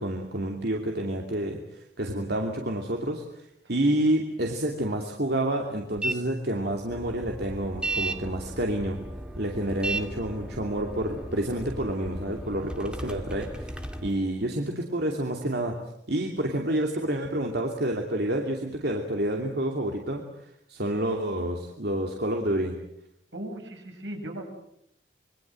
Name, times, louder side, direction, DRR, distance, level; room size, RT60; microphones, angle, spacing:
voice 1, 0.0-3.2 3.7-9.0 9.4-13.7 14.0-15.7 16.1-20.2 20.7-22.7, right 1 dB, 65° right, 2 dB, 2.8 m, -28 dB
voice 2, 3.6-4.0 23.3-24.5, right 1 dB, 80° right, 3 dB, 7.3 m, -38 dB
sound 1, 6.0-6.2 6.5-14.1, right 2 dB, 5° right, 2.4 m, -35 dB
26.5 x 23.0 x 7.6 m, 0.76 s
head